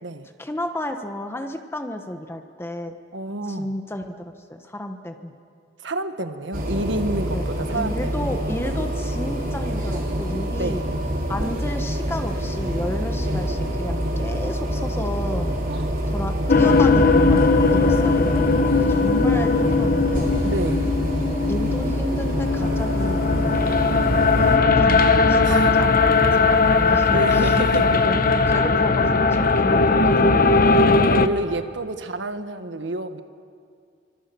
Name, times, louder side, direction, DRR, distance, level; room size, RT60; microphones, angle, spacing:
voice 1, 0.4-3.0 3.5-5.3 7.3-7.5 7.7-10.8 11.3-15.5 16.1-20.3 21.5-23.8 24.4-27.5 27.8-30.7, left 1 dB, 15° left, 5 dB, 1.2 m, -32 dB
voice 2, 3.1-3.7 5.8-8.4 10.5-10.9 15.7-15.9 20.4-20.9 25.4-25.7 27.1-28.0 31.0-33.2, right 1 dB, 85° right, 9 dB, 1.5 m, -29 dB
sound 1, 6.5-24.6, equal, 50° right, 5.3 m, -26 dB
sound 2, 16.5-31.3, left 3 dB, 50° left, 1.1 m, -19 dB
27.5 x 25.0 x 7.0 m, 2.3 s
head